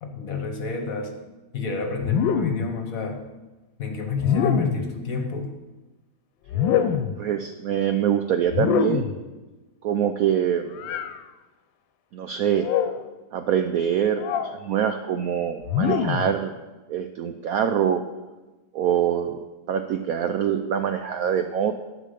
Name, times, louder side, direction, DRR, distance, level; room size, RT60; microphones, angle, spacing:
voice 1, 0.0-1.1 1.5-3.2 3.8-5.5, left 4 dB, 50° left, 5 dB, 1.3 m, -29 dB
sound 1, 2.0-2.7 4.2-4.9 6.5-7.2 8.5-9.2 10.8-11.1 12.6-13.0 14.2-14.6 15.7-16.3, left 8 dB, 80° left, 1.3 m, -24 dB
voice 2, 7.2-9.1 9.8-10.7 12.1-12.7 13.3-16.5 16.9-18.0 18.7-19.4 19.7-21.8, right 9 dB, 90° right, 8 dB, 0.7 m, -24 dB
11.5 x 5.0 x 6.7 m, 1.2 s
omnidirectional pair, 2.1 m